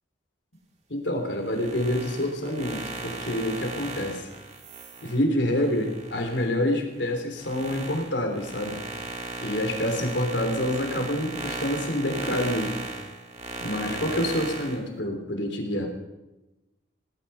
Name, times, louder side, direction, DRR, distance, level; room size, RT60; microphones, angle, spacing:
voice 1, 0.9-4.3 5.0-8.8 9.4-12.8 13.6-15.9, left 1 dB, 70° left, 4 dB, 3.3 m, -27 dB
sound 1, 1.4-6.5 6.9-14.8, right 2 dB, 35° right, 2.2 m, -36 dB
18.5 x 12.0 x 5.7 m, 1.0 s
head